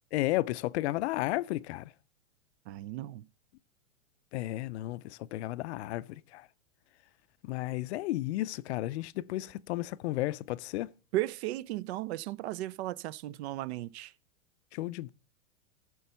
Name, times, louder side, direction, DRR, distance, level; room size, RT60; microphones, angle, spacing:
voice 1, 0.1-1.9 4.3-6.5 7.4-10.9 14.7-15.1, left 17 dB, 55° left, 0.5 m, -33 dB
voice 2, 2.7-3.3 11.1-14.1, right 15 dB, 55° right, 0.5 m, -35 dB
14.0 x 7.0 x 5.6 m
hypercardioid pair, 130°, 40 cm